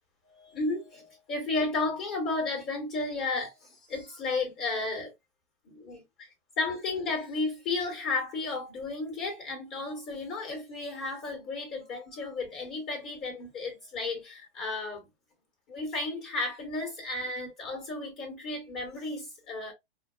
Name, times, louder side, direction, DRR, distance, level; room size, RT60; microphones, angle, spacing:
voice 1, 0.2-5.1 5.6-15.1 15.7-19.7, left 3 dB, 30° left, 1.3 m, -33 dB
5.0 x 2.1 x 2.5 m
figure-of-eight pair, 105°, 31 cm